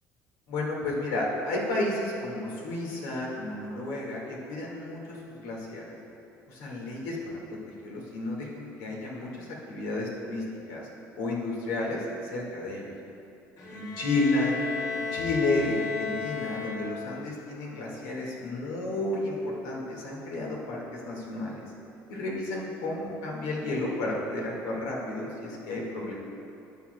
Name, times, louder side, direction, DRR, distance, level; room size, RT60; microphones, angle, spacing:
voice 1, 0.5-6.0 6.5-10.9 11.2-12.9 13.7-14.6 15.0-21.7 22.1-26.1, left 2 dB, 85° left, -2 dB, 1.8 m, -32 dB
Bowed string instrument, 13.6-17.2, left 5 dB, 65° left, 2.0 m, -34 dB
13.0 x 8.5 x 2.2 m, 2.7 s
cardioid pair, 120°, 6 cm